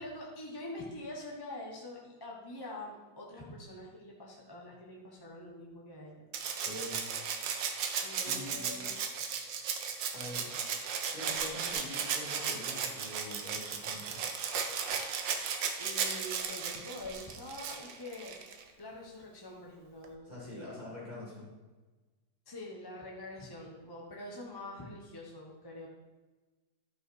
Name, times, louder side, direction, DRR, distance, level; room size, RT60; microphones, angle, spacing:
voice 1, 0.0-6.3 8.0-9.0 11.2-11.4 15.8-18.4 18.8-20.7 22.5-25.9, left 1 dB, 15° left, -3 dB, 1.0 m, -45 dB
Rattle (instrument), 6.3-18.6 20.0-20.1, right 6 dB, 85° right, 1.6 m, -35 dB
voice 2, 6.5-7.0 8.2-8.9 10.1-10.6 11.1-14.2 20.2-21.5, left 1 dB, 20° right, -5 dB, 3.4 m, -44 dB
12.5 x 5.5 x 4.7 m, 1.3 s
omnidirectional pair, 1.9 m